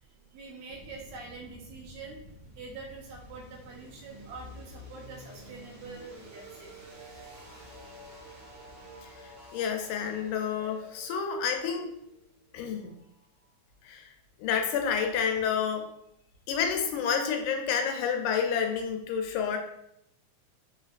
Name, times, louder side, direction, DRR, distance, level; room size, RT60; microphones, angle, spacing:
voice 1, 0.1-2.2 2.6-6.8, right 4 dB, 75° right, -2 dB, 1.9 m, -45 dB
sound 1, 0.7-13.5, equal, 45° right, 1.7 m, -50 dB
voice 2, 9.2-11.9 12.5-12.9 13.8-14.1 14.4-15.9 16.5-19.6, left 7 dB, 80° left, 4 dB, 2.0 m, -29 dB
4.6 x 3.5 x 2.4 m, 0.77 s
omnidirectional pair, 3.5 m